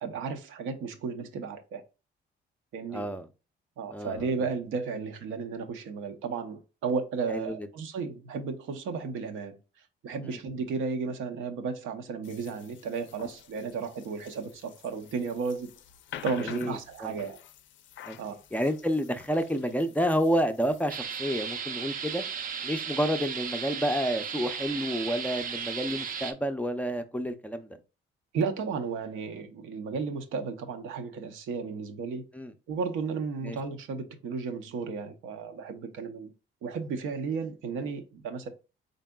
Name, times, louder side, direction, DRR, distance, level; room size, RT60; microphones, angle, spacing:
voice 1, 0.0-1.8 2.7-3.1 3.8-9.6 10.0-15.7 16.2-17.4 18.2-18.4 28.3-32.3 32.7-36.3 36.6-38.5, right 5 dB, 85° right, 0.7 m, -34 dB
voice 2, 2.9-3.3 3.9-4.3 7.3-7.7 10.2-10.4 16.4-17.1 18.0-18.2 18.5-22.2 22.6-27.8 32.3-32.5 33.4-33.6, equal, 5° left, 0.4 m, -29 dB
sound 1, 12.2-21.0, left 10 dB, 75° left, 0.4 m, -48 dB
sound 2, 20.9-26.3, right 6 dB, 45° right, 0.5 m, -35 dB
3.9 x 3.5 x 2.2 m
cardioid pair, 90°, 20 cm